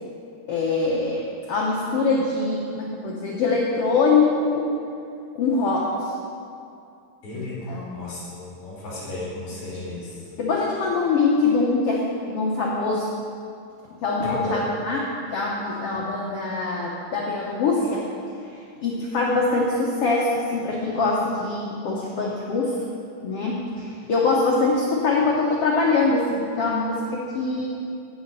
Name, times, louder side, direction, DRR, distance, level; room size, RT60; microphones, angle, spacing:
voice 1, 0.5-1.2 1.5-4.7 5.3-6.1 7.3-8.1 10.4-13.1 14.0-18.0 18.8-22.7 23.2-27.7, left 3 dB, 80° left, -3 dB, 1.3 m, -23 dB
voice 2, 7.2-7.6 7.9-10.4 14.2-14.6, left 2 dB, 55° left, -8 dB, 3.6 m, -34 dB
8.0 x 6.4 x 8.1 m, 2.5 s
omnidirectional pair, 4.1 m